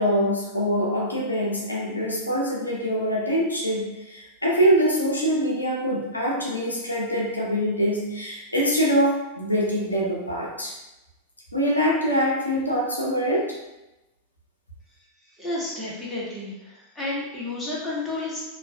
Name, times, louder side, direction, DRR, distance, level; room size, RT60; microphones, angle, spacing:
voice 1, 0.0-10.7 11.5-13.6, equal, 80° left, -3 dB, 0.4 m, -24 dB
voice 2, 15.4-16.5 17.0-18.4, left 2 dB, 5° left, -8 dB, 0.9 m, -30 dB
2.3 x 2.2 x 2.3 m, 0.99 s
figure-of-eight pair, 90°, 0 cm